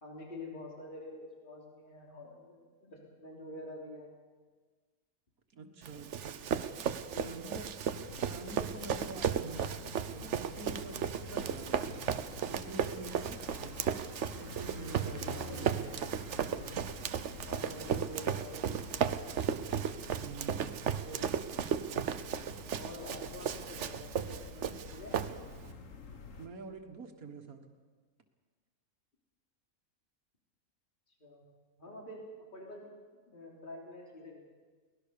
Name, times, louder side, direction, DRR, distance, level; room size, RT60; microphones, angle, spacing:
voice 1, 0.0-4.1 7.0-7.6 13.8-13.9 15.3-16.0 17.3-19.3 21.1-21.3 22.7-25.4 31.2-31.5 31.8-32.2 32.5-32.9 33.3-34.4, left 1 dB, 35° left, -1 dB, 3.4 m, -47 dB
voice 2, 5.5-6.7 7.2-7.7 8.3-9.7 10.1-12.0 12.4-13.7 14.4-15.9 20.1-20.8 26.4-27.6, right 3 dB, 90° right, 5 dB, 2.2 m, -46 dB
Run, 5.8-25.7, right 8 dB, 60° right, 1.1 m, -35 dB
sound 1, 7.9-26.5, left 4 dB, 65° left, 1.9 m, -48 dB
23.0 x 19.0 x 6.8 m, 1.4 s
omnidirectional pair, 1.5 m